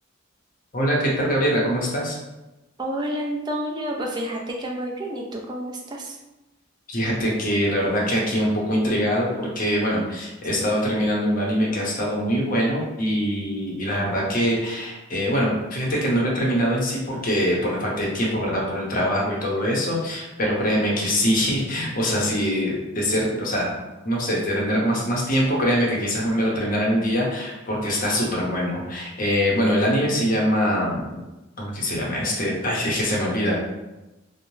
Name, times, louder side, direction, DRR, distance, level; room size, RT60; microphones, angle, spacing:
voice 1, 0.7-2.2 6.9-23.7 24.0-31.2 31.6-33.6, equal, 40° left, -4 dB, 0.7 m, -23 dB
voice 2, 2.8-6.2, right 1 dB, 20° right, 0 dB, 0.3 m, -29 dB
3.0 x 2.1 x 2.7 m, 1.0 s
head